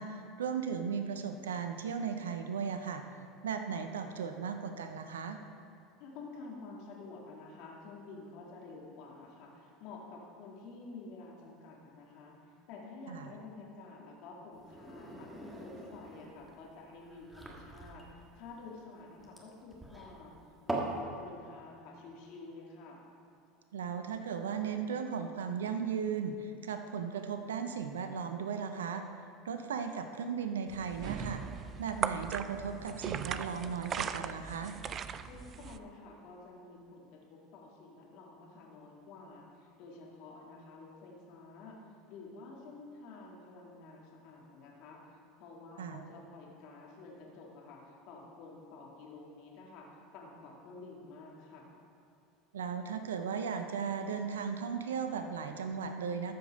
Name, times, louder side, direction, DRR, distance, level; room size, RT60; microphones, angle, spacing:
voice 1, 0.0-3.0 3.4-5.4 13.1-13.3 23.7-29.0 29.4-31.4 31.8-34.7 45.8-46.0 52.5-56.3, right 6 dB, 85° right, 7 dB, 0.6 m, -36 dB
voice 2, 6.0-20.3 20.7-23.0 35.3-41.8 42.1-45.0 45.4-51.6, left 3 dB, 60° left, -2 dB, 2.0 m, -50 dB
sound 1, 14.5-21.0, right 2 dB, 10° right, 1.8 m, -42 dB
sound 2, 30.7-35.8, right 7 dB, 40° right, 0.4 m, -39 dB
13.5 x 5.2 x 5.2 m, 2.5 s
hypercardioid pair, 85°, 0 cm